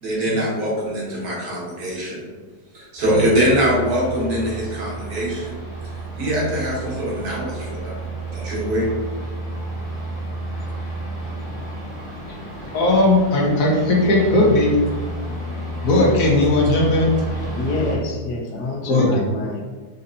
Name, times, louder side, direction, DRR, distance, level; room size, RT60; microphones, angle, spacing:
voice 1, 0.0-2.3 2.7-5.6 6.2-8.9, equal, 70° right, -5 dB, 1.5 m, -23 dB
sound 1, 3.0-18.0, right 2 dB, 45° left, 1.7 m, -31 dB
voice 2, 12.7-14.8 15.8-17.2 18.9-19.1, left 2 dB, 65° left, -2 dB, 1.1 m, -17 dB
voice 3, 17.6-19.6, left 2 dB, 90° left, 1 dB, 1.2 m, -27 dB
4.3 x 2.7 x 2.6 m, 1.4 s
omnidirectional pair, 1.7 m